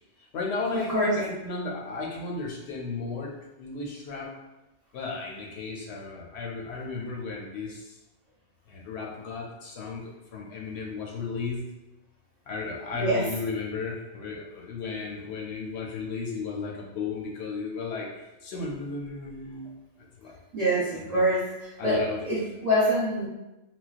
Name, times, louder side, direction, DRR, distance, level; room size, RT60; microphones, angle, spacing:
voice 1, 0.3-4.3 4.9-7.9 8.7-11.6 12.5-18.1 18.4-19.7 20.2-20.4 20.9-21.2 21.8-22.2, left 4 dB, 70° left, -1 dB, 0.8 m, -34 dB
voice 2, 20.5-21.4 21.8-23.3, equal, 40° right, -7 dB, 0.8 m, -24 dB
3.9 x 2.1 x 2.4 m, 0.99 s
omnidirectional pair, 1.2 m